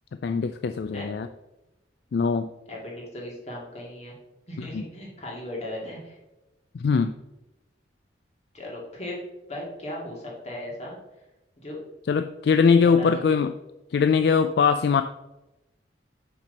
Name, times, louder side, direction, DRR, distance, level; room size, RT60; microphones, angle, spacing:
voice 1, 0.2-1.3 2.1-2.5 4.6-4.8 6.8-7.2 12.1-13.5 13.9-15.0, left 5 dB, 60° left, 9 dB, 0.3 m, -21 dB
voice 2, 2.7-4.2 4.5-6.2 8.5-9.2 9.5-11.0 11.6-11.8 12.5-13.4, left 1 dB, 35° left, -3 dB, 2.3 m, -37 dB
6.0 x 5.9 x 5.3 m, 0.97 s
head